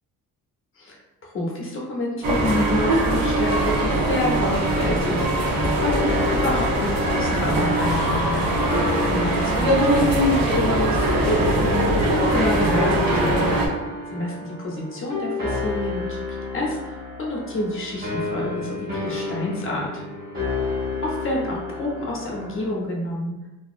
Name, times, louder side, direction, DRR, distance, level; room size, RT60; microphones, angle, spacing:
voice 1, 1.2-8.4 9.1-20.0 21.0-23.3, left 1 dB, 35° left, -3 dB, 0.7 m, -28 dB
sound 1, 2.2-13.7, right 1 dB, 75° right, 0.7 m, -21 dB
sound 2, 4.8-22.8, left 3 dB, 25° right, 1.1 m, -31 dB
2.7 x 2.3 x 2.4 m, 1.0 s
cardioid pair, 160°, 35 cm